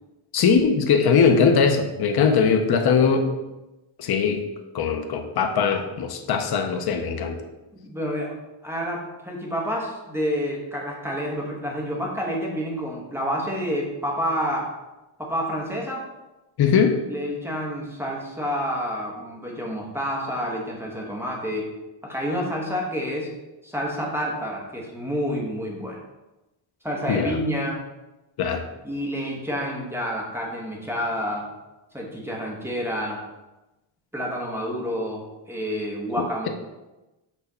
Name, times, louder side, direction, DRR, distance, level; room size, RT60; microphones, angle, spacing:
voice 1, 0.3-3.3 4.0-4.4 4.7-7.4 16.6-17.0 27.1-27.4 28.4-28.6 36.2-36.5, left 6 dB, 50° left, 4 dB, 0.7 m, -20 dB
voice 2, 7.7-8.4 8.6-14.7 15.2-16.1 17.1-21.7 22.0-23.3 23.6-26.0 26.8-27.8 28.8-31.5 31.9-33.2 34.1-36.5, equal, 5° right, -2 dB, 1.1 m, -29 dB
6.1 x 3.4 x 5.5 m, 1.0 s
wide cardioid pair, 155°, 50 cm